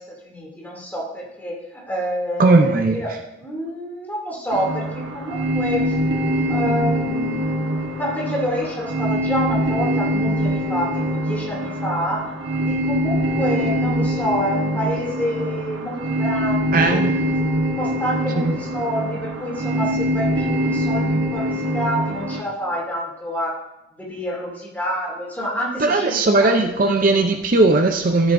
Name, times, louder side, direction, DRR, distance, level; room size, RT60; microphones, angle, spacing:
voice 1, 0.0-6.0 6.5-7.5 7.9-12.2 12.6-17.0 17.8-23.5 23.9-26.6, equal, 10° left, -4 dB, 2.6 m, -27 dB
voice 2, 2.4-3.0 16.7-17.1 18.4-18.5 25.8-28.3, right 2 dB, 45° right, 4 dB, 0.6 m, -17 dB
sound 1, 4.5-22.4, equal, 70° right, 1.2 m, -23 dB
14.0 x 7.8 x 2.6 m, 0.94 s
head